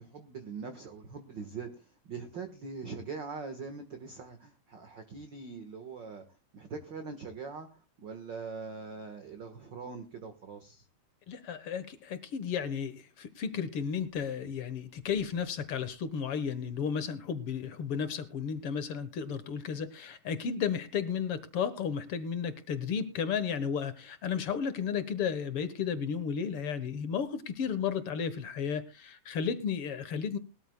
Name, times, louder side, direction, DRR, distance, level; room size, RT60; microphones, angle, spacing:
voice 1, 0.0-6.2 6.5-10.8, right 5 dB, 50° right, 7 dB, 1.4 m, -42 dB
voice 2, 11.3-30.4, left 7 dB, 65° left, 13 dB, 1.5 m, -33 dB
21.0 x 13.5 x 2.2 m, 0.32 s
omnidirectional pair, 3.8 m